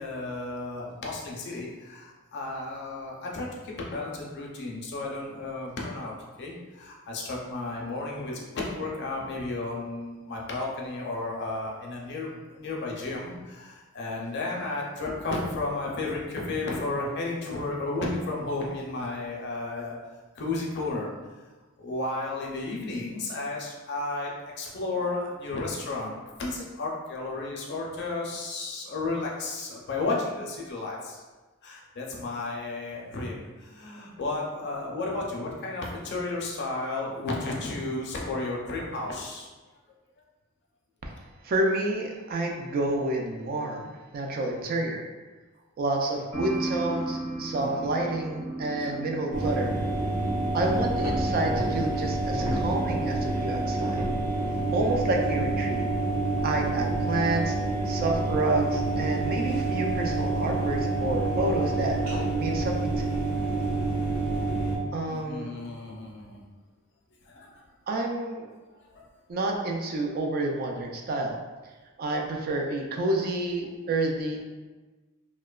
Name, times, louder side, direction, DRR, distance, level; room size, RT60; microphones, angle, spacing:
voice 1, 0.0-19.9 20.4-21.1 21.8-24.3 24.6-31.2 31.6-39.5 47.6-47.9 48.8-48.9 64.7-66.4 67.3-67.6, left 2 dB, 55° left, -2 dB, 0.5 m, -33 dB
voice 2, 41.4-45.1 45.8-49.7 50.5-54.1 54.5-55.8 56.4-57.6 57.8-62.0 62.4-63.2 64.9-65.6 67.9-68.5 69.3-71.4 72.0-74.4, right 2 dB, 45° right, 1 dB, 0.3 m, -29 dB
sound 1, 46.3-55.8, right 1 dB, 25° right, 0.7 m, -37 dB
sound 2, 49.3-64.8, right 2 dB, 70° right, 0.7 m, -28 dB
2.8 x 2.1 x 2.3 m, 1.2 s
head